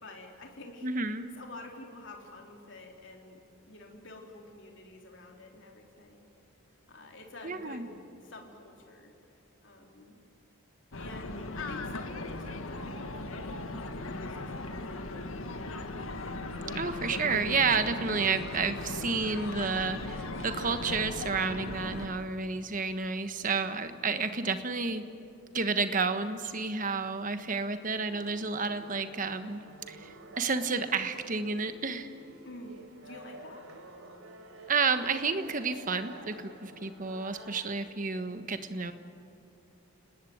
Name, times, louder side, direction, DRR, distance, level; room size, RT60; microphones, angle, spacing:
voice 1, 0.0-0.9 1.3-3.4 3.7-6.3 6.9-9.1 9.6-10.2 10.9-15.8 32.4-33.7, left 2 dB, 60° left, 1 dB, 3.7 m, -49 dB
voice 2, 0.8-1.3 7.4-7.9 16.7-25.0 25.5-29.6 29.9-32.1 34.7-38.9, right 4 dB, 40° right, 9 dB, 1.3 m, -31 dB
sound 1, 10.9-22.1, left 2 dB, 75° left, 1.8 m, -38 dB
sound 2, 27.8-37.7, right 2 dB, 75° right, 4.0 m, -50 dB
29.5 x 19.5 x 9.4 m, 2.8 s
head